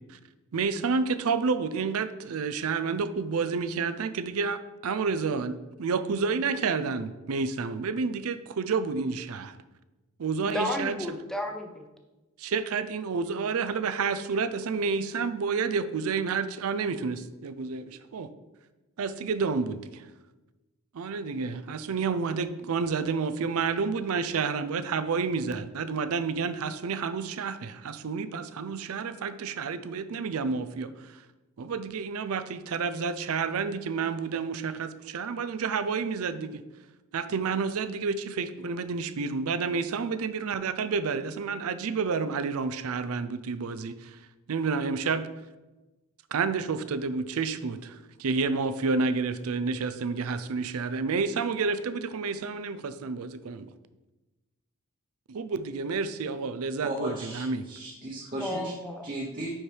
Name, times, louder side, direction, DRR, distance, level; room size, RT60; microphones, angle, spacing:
voice 1, 0.5-9.5 10.2-11.0 12.4-18.3 19.0-20.1 20.9-31.2 31.6-36.6 37.1-44.2 44.5-45.2 46.3-53.7 55.3-57.6, right 5 dB, 75° right, 12 dB, 0.5 m, -30 dB
voice 2, 10.4-11.9 58.3-59.1, left 1 dB, ahead, 3 dB, 0.5 m, -33 dB
voice 3, 56.8-58.7 59.0-59.5, right 1 dB, 40° right, -4 dB, 0.9 m, -36 dB
10.0 x 4.4 x 3.3 m, 1.1 s
head